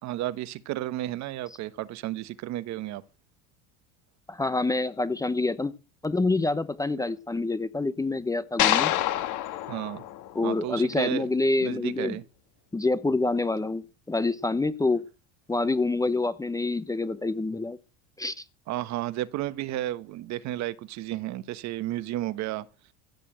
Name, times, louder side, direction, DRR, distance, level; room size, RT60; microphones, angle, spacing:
voice 1, 0.0-3.0 9.7-10.0 10.4-11.3 11.6-12.2 18.7-22.7, right 14 dB, 50° right, 1.2 m, -32 dB
voice 2, 4.3-5.7 6.0-8.9 10.3-12.2 12.7-15.0 15.5-17.8 18.2-18.4, left 3 dB, 10° left, 0.8 m, -27 dB
sound 1, 8.6-10.9, left 13 dB, 60° left, 2.1 m, -27 dB
16.0 x 6.9 x 7.8 m
supercardioid pair, 120°, 35 cm